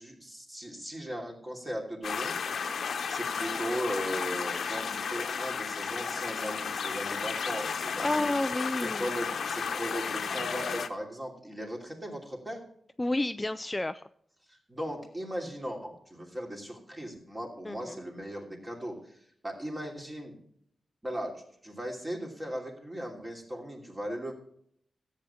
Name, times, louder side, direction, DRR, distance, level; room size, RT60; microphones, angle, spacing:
voice 1, 0.0-2.3 3.1-8.3 8.8-12.6 14.5-19.2 19.4-20.4 21.0-21.3 21.6-24.3, equal, 20° right, 0 dB, 2.9 m, -37 dB
sound 1, 2.0-10.9, left 6 dB, 70° left, 0.9 m, -33 dB
voice 2, 8.0-9.1 13.0-14.0 17.7-18.0, left 2 dB, 15° left, 11 dB, 0.3 m, -30 dB
14.0 x 8.4 x 4.4 m, 0.66 s
wide cardioid pair, 140°, 0 cm